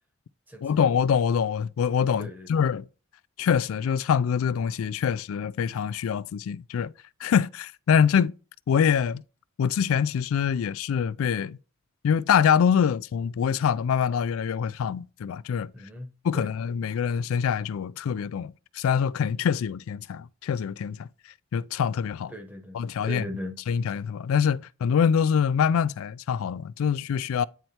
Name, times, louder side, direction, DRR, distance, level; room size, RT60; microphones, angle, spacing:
voice 1, 0.6-2.9 3.4-6.9 7.2-8.4 8.7-9.2 9.6-11.6 12.0-15.7 16.2-21.1 21.5-22.3 22.7-23.2 23.7-27.4, left 7 dB, 75° left, 0.3 m, -25 dB
voice 2, 2.2-2.7 15.7-16.1 16.3-16.5 22.3-23.6, left 1 dB, 10° right, 0.9 m, -38 dB
9.3 x 4.4 x 2.8 m
head